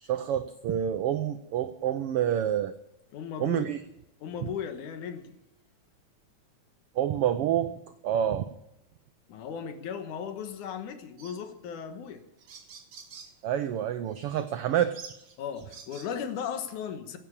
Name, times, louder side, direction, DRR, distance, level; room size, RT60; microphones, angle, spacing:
voice 1, 0.0-2.7 3.4-3.8 4.4-4.5 7.0-7.7 8.0-8.5 13.4-15.0, right 10 dB, 85° right, 10 dB, 1.2 m, -28 dB
voice 2, 3.1-3.7 4.2-5.3 9.3-12.2 15.4-17.2, left 7 dB, 85° left, 8 dB, 2.8 m, -36 dB
sound 1, 11.2-11.4 12.1-12.2 12.4-13.4 14.1-14.3 14.9-16.1, right 6 dB, 45° right, 2.3 m, -48 dB
16.0 x 8.7 x 8.4 m, 0.88 s
omnidirectional pair, 3.4 m